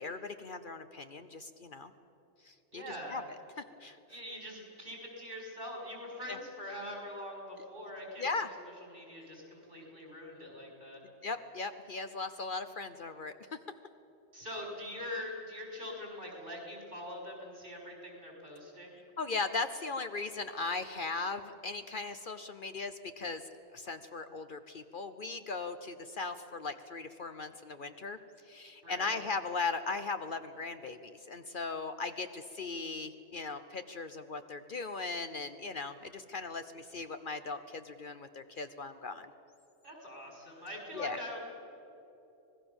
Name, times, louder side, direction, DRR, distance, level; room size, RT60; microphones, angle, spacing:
voice 1, 0.0-1.9 2.4-3.2 3.6-4.0 6.3-6.4 8.2-8.5 11.2-13.3 19.2-23.4 23.7-28.2 28.5-39.3 40.9-41.2, left 3 dB, 50° left, 9 dB, 0.9 m, -38 dB
voice 2, 2.7-3.2 4.1-8.5 8.9-11.0 14.3-18.9 28.8-29.2 39.8-41.4, left 1 dB, 50° right, 0 dB, 5.9 m, -43 dB
25.5 x 19.5 x 7.1 m, 3.0 s
omnidirectional pair, 1.2 m